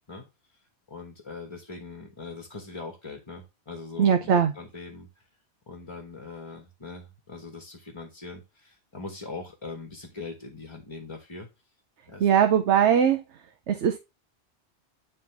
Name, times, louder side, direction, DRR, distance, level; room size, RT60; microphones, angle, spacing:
voice 1, 0.9-5.1 5.7-11.5 12.1-12.3, left 3 dB, 25° left, 1.2 m, -41 dB
voice 2, 4.0-4.5 12.2-13.2 13.7-14.0, right 8 dB, 80° right, 1.0 m, -20 dB
9.6 x 3.4 x 3.3 m
omnidirectional pair, 1.2 m